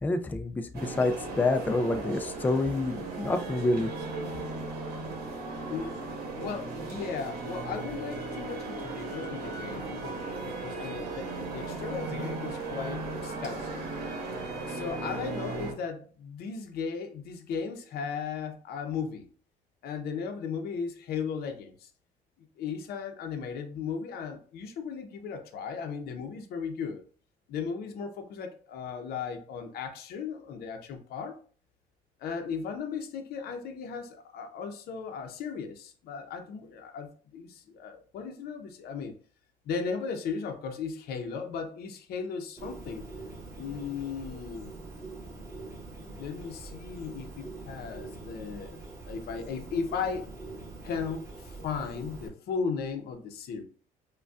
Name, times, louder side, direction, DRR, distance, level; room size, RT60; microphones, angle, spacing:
voice 1, 0.0-3.9, left 2 dB, 10° left, 7 dB, 0.3 m, -28 dB
sound 1, 0.7-15.7, right 3 dB, 65° right, 1.1 m, -36 dB
voice 2, 6.3-13.8 14.7-19.3 19.8-21.9 22.6-27.0 27.5-31.4 32.2-39.2 39.7-43.0 43.6-44.7 46.2-48.8 49.0-50.3 50.8-53.6, left 6 dB, 70° left, 5 dB, 0.7 m, -36 dB
Bird, 42.6-52.3, right 2 dB, 15° right, 1.5 m, -44 dB
5.0 x 2.3 x 2.4 m, 0.42 s
cardioid pair, 110°, 17 cm